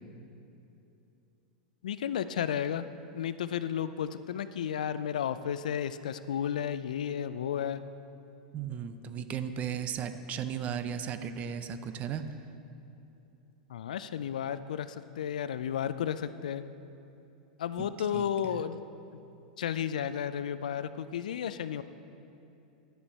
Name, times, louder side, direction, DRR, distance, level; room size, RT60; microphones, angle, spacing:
voice 1, 1.8-2.9 3.1-7.8 13.7-16.6 17.6-18.8 19.6-21.8, left 9 dB, 80° left, 13 dB, 0.3 m, -33 dB
voice 2, 8.5-12.2 17.8-18.6, right 8 dB, 35° right, 10 dB, 0.5 m, -36 dB
10.5 x 6.9 x 4.2 m, 2.9 s
hypercardioid pair, 105°, 4 cm